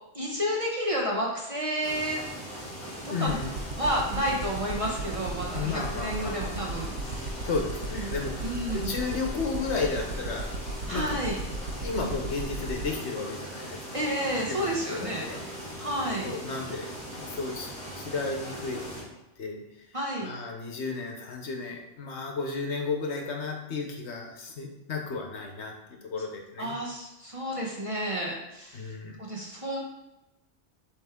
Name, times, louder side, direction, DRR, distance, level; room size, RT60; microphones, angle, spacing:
voice 1, 0.1-2.2 3.2-3.4 3.8-7.5 7.9-8.1 8.4-8.9 10.9-11.4 13.9-15.3 15.8-16.3 19.9-20.3 26.6-28.9 29.2-29.8, equal, 30° right, -2 dB, 1.0 m, -31 dB
sound 1, 1.8-19.0, equal, 5° left, 2.1 m, -40 dB
voice 2, 3.1-3.5 5.5-6.8 7.4-10.6 10.9-11.2 11.8-14.0 14.5-15.4 16.2-16.9 17.2-19.1 19.4-19.6 20.2-26.8 28.7-29.2, left 4 dB, 70° left, 2 dB, 1.2 m, -33 dB
sound 2, 3.3-12.8, right 4 dB, 75° right, 0.9 m, -35 dB
7.8 x 3.3 x 3.6 m, 0.97 s
omnidirectional pair, 1.2 m